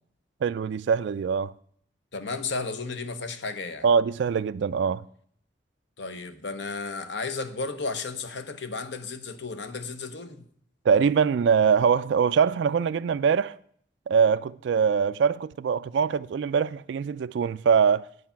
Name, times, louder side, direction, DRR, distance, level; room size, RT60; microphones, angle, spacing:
voice 1, 0.4-1.5 3.8-5.0 10.9-13.6 14.1-18.0, right 6 dB, 75° right, 0.3 m, -23 dB
voice 2, 2.1-3.8 6.0-10.5, left 4 dB, 75° left, 1.0 m, -33 dB
9.6 x 8.0 x 5.7 m
head